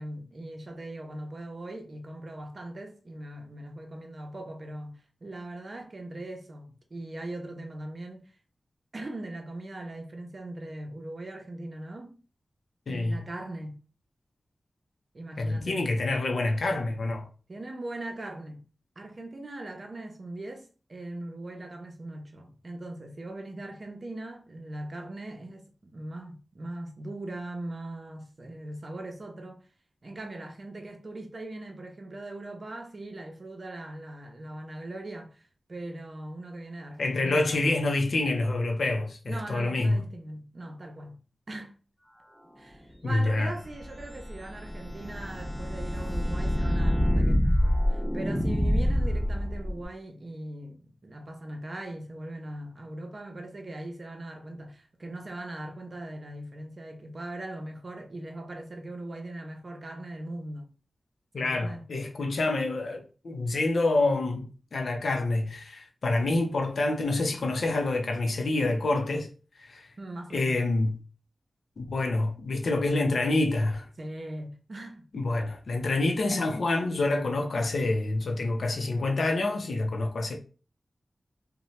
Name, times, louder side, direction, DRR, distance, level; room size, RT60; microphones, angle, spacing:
voice 1, 0.0-8.3 8.9-12.2 12.9-13.8 15.1-15.8 17.5-18.7 19.0-29.6 30.0-35.4 35.7-38.0 39.3-41.8 42.6-60.7 61.4-61.9 70.0-70.6 74.0-75.1, right 1 dB, 50° right, 0.6 m, -40 dB
voice 2, 12.9-13.2 15.4-17.3 37.0-40.0 43.0-43.5 61.3-69.3 69.6-69.9 70.3-71.0 71.8-73.9 75.1-80.4, left 2 dB, 80° left, 0.5 m, -27 dB
sound 1, 43.5-49.8, equal, 10° left, 0.8 m, -26 dB
2.7 x 2.1 x 3.0 m
wide cardioid pair, 75°, 0 cm